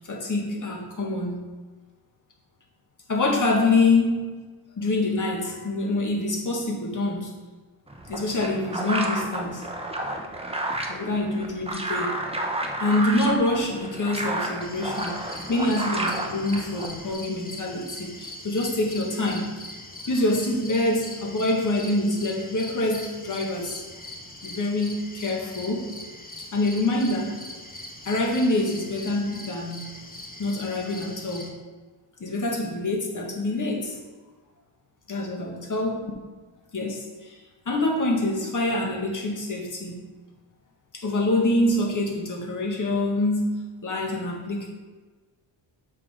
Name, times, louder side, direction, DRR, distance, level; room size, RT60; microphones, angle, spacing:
voice 1, 0.0-1.4 3.1-4.4 4.8-7.3 8.1-9.7 10.9-12.2 12.8-19.5 20.1-23.8 24.4-25.9 26.5-27.4 28.1-30.0 30.4-31.5 32.2-34.0 35.1-36.0 36.7-37.4 37.7-40.0 40.9-44.7, left 2 dB, 40° left, -1 dB, 1.9 m, -26 dB
sound 1, 7.9-17.1, right 1 dB, 15° right, 1.0 m, -31 dB
sound 2, 14.6-31.5, left 1 dB, 20° left, 1.3 m, -41 dB
7.4 x 5.9 x 3.8 m, 1.3 s
cardioid pair, 90°, 46 cm